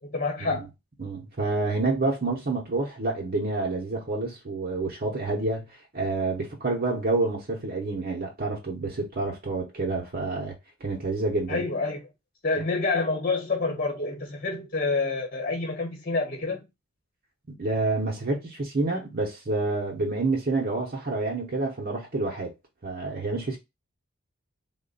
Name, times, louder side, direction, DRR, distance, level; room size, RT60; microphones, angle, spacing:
voice 1, 0.1-0.6 11.5-12.0 12.4-16.6, left 3 dB, 40° left, 1.1 m, -27 dB
voice 2, 1.0-10.5 10.8-11.7 17.6-22.5 22.8-23.6, right 3 dB, 40° right, 0.7 m, -28 dB
3.7 x 2.1 x 3.8 m
head